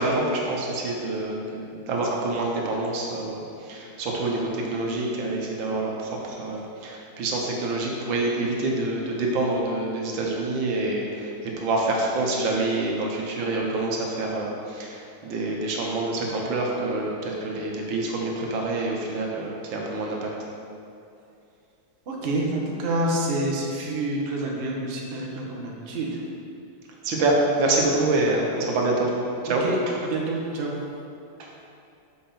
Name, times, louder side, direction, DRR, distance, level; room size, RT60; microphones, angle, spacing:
voice 1, 0.0-20.3 27.0-29.1 29.4-29.7 31.4-31.5, right 2 dB, 80° right, -1 dB, 1.7 m, -26 dB
voice 2, 22.1-26.2 29.4-29.8 30.0-30.8, right 1 dB, 45° right, -2 dB, 0.8 m, -28 dB
6.5 x 5.6 x 4.3 m, 2.6 s
omnidirectional pair, 2.1 m